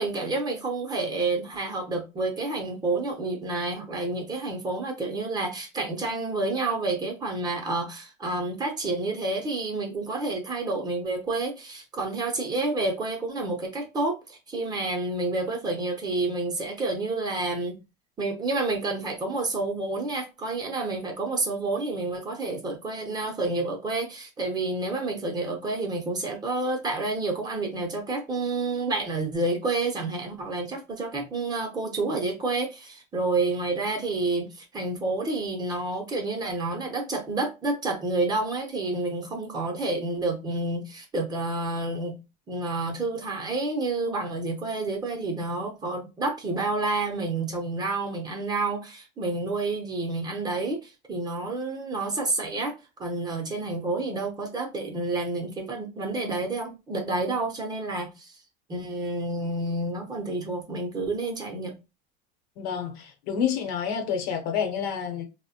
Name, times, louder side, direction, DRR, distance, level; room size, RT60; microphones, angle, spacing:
voice 1, 0.0-17.8 18.2-42.1 42.5-52.7 53.0-58.4 58.7-61.8, right 3 dB, 20° right, 0.6 m, -29 dB
voice 2, 62.6-65.2, left 7 dB, 75° left, 0.9 m, -28 dB
3.1 x 2.1 x 2.7 m
cardioid pair, 150°, 21 cm